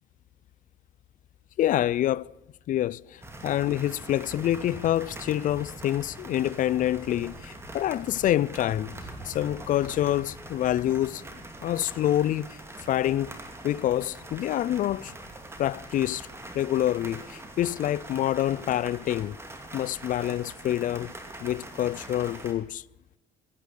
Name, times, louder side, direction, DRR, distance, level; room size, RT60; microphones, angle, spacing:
voice 1, 1.6-2.3 2.7-9.0 9.3-11.2 11.6-12.6 12.9-13.3 13.6-15.1 15.6-16.3 16.5-19.4 19.7-21.1 21.4-22.8, left 12 dB, 50° left, 0.4 m, -27 dB
sound 1, 3.2-22.5, right 1 dB, 15° right, 2.5 m, -43 dB
15.5 x 9.9 x 6.5 m
cardioid pair, 110°, 17 cm